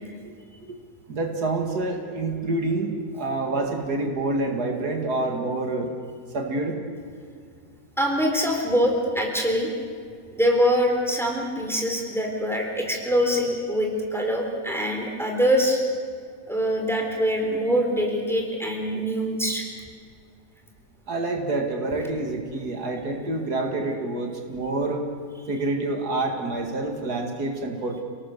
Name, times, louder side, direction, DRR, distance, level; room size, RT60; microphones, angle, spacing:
voice 1, 1.1-5.9 6.3-6.8 21.1-25.0 25.5-28.0, right 2 dB, 75° right, 3 dB, 2.7 m, -27 dB
voice 2, 8.0-9.7 10.3-15.8 16.5-19.6, equal, ahead, 1 dB, 3.7 m, -24 dB
29.0 x 18.0 x 6.8 m, 2.1 s
omnidirectional pair, 1.7 m